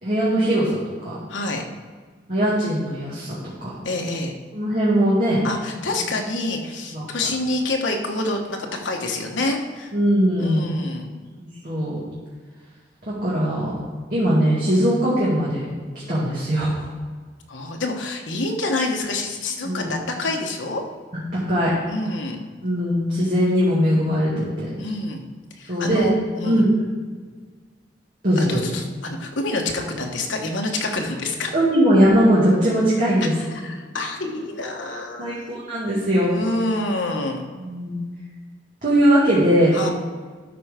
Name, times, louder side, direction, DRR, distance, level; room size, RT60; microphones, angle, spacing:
voice 1, 0.0-1.2 2.3-3.7 4.5-5.4 6.0-6.1 6.9-7.1 9.9-10.7 11.4-12.0 13.1-13.8 14.1-15.7 16.1-16.9 19.6-19.9 21.3-21.7 22.6-24.7 25.7-26.1 26.4-26.9 28.2-28.6 31.5-33.3 35.2-36.3 37.6-38.0 38.8-39.8, equal, 45° right, -8 dB, 2.0 m, -20 dB
voice 2, 1.3-1.6 3.8-4.3 5.4-9.9 10.4-11.1 17.5-20.8 21.9-22.4 24.8-25.2 25.5-26.7 28.4-31.5 33.5-35.4 36.3-37.5 39.7-39.9, left 2 dB, 80° left, 2 dB, 1.2 m, -27 dB
12.0 x 4.4 x 5.0 m, 1.5 s
head